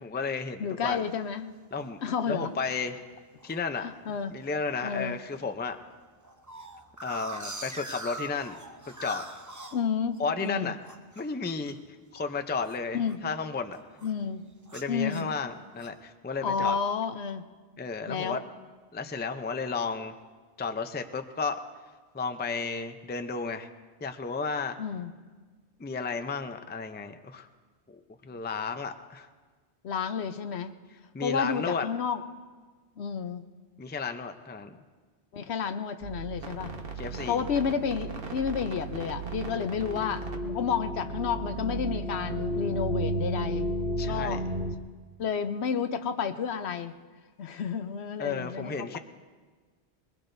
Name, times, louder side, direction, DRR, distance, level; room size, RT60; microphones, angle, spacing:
voice 1, 0.0-1.0 1.7-2.0 2.3-3.0 3.4-3.9 4.3-5.8 7.0-8.6 8.9-9.2 10.2-10.8 11.2-11.8 12.1-13.8 14.7-16.8 17.8-18.4 18.9-20.2 20.6-21.6 22.1-23.7 24.0-24.8 25.8-27.5 27.9-29.3 31.1-31.9 33.8-34.8 37.0-37.4 44.0-44.4 48.2-49.0, left 4 dB, 15° left, 7 dB, 0.4 m, -33 dB
voice 2, 0.6-1.5 2.0-2.5 3.8-4.3 4.8-5.2 9.7-10.7 12.9-13.2 14.0-14.4 14.9-15.3 16.4-17.5 18.1-18.4 24.8-25.1 29.8-30.7 31.2-32.2 33.0-33.4 35.3-36.7 37.3-43.7 44.0-44.4 45.2-46.9 47.4-49.0, left 6 dB, 75° left, 9 dB, 1.0 m, -31 dB
sound 1, 0.9-1.3 1.8-1.9 2.1-2.5 2.8-3.6 4.1-4.5 4.9-5.0 5.2-5.3 5.7-10.5 10.8-13.4 13.6-14.2 14.6-16.0, right 1 dB, 20° right, 0.7 m, -43 dB
sound 2, 36.0-44.8, right 1 dB, 60° right, 1.3 m, -33 dB
22.0 x 21.0 x 2.7 m, 1.4 s
omnidirectional pair, 1.1 m